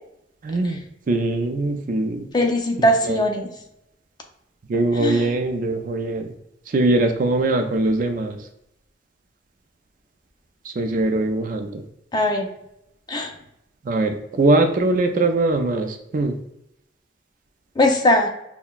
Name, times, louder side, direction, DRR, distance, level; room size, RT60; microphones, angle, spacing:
voice 1, 0.4-2.3 2.8-3.2 4.7-6.3 6.7-8.4 10.7-11.8 13.8-16.4, right 2 dB, 45° right, 6 dB, 0.4 m, -22 dB
voice 2, 2.3-3.5 5.0-5.3 12.1-12.5 13.1-13.3 17.8-18.3, left 1 dB, 25° left, 2 dB, 0.5 m, -19 dB
5.6 x 2.2 x 2.3 m, 0.81 s
head